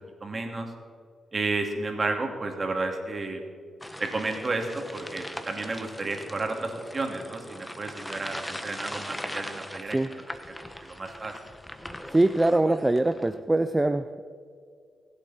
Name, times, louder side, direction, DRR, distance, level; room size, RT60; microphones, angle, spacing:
voice 1, 0.2-0.7 1.3-3.4 4.0-10.0 10.6-11.3, right 3 dB, 40° right, 3 dB, 2.7 m, -32 dB
sound 1, 3.8-13.4, left 1 dB, 10° left, 1.3 m, -40 dB
voice 2, 12.1-14.2, right 2 dB, 20° right, 10 dB, 0.5 m, -23 dB
23.5 x 8.4 x 4.4 m, 2.1 s
supercardioid pair, 55°, 0 cm